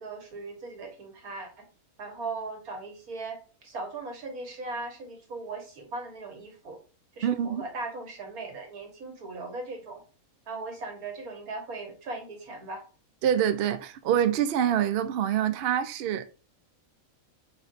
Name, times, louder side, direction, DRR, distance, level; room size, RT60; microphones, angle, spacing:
voice 1, 0.0-1.7 2.0-6.8 7.2-10.0 10.5-12.8, right 3 dB, 90° right, 1.8 m, -38 dB
voice 2, 7.2-7.6 13.2-16.3, right 9 dB, 70° right, 0.5 m, -26 dB
4.5 x 4.0 x 2.5 m
omnidirectional pair, 1.5 m